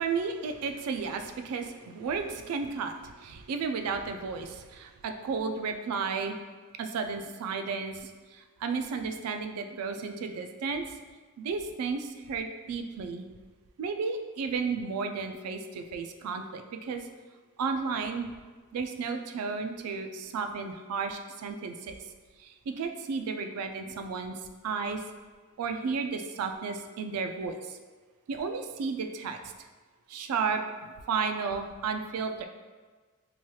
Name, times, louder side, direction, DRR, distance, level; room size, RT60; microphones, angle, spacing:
voice 1, 0.0-6.4 6.8-10.8 11.4-13.2 13.8-17.0 17.6-18.3 18.7-22.0 22.4-24.4 24.6-25.0 25.6-27.8 28.3-29.4 30.1-30.6 31.1-32.5, right 5 dB, 80° right, 7 dB, 0.3 m, -33 dB
3.1 x 2.8 x 2.3 m, 1.4 s
head